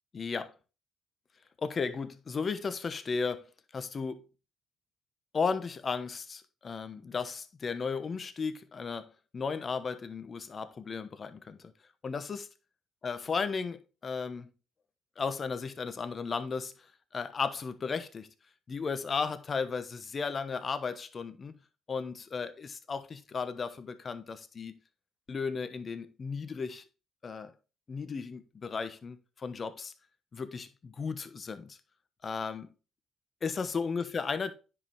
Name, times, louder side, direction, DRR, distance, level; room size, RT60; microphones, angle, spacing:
voice 1, 0.1-0.5 1.6-3.5 3.7-4.2 5.3-11.7 12.0-12.5 13.0-14.5 15.2-16.7 17.1-18.3 18.7-21.5 21.9-24.8 25.3-26.8 27.2-27.5 27.9-29.9 30.3-31.8 32.2-32.7 33.4-34.5, left 5 dB, 40° left, 1.1 m, -35 dB
9.8 x 5.4 x 3.6 m
hypercardioid pair, 55°, 0 cm